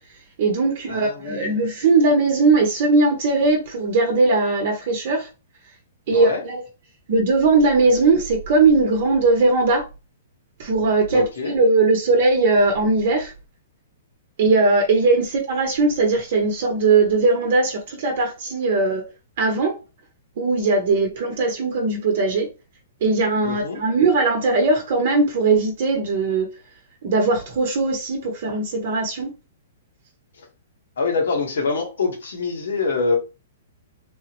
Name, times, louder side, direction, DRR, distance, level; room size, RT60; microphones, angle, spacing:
voice 1, 0.4-5.3 6.1-6.6 7.1-9.8 10.6-13.3 14.4-19.0 19.4-19.7 20.4-22.5 23.0-26.5 27.0-29.3, right 3 dB, 55° right, 0.7 m, -19 dB
voice 2, 0.9-1.6 6.1-6.4 11.1-11.5 23.4-23.8 31.0-33.2, left 4 dB, 80° left, 1.1 m, -25 dB
3.3 x 2.0 x 2.9 m
hypercardioid pair, 150°, 0 cm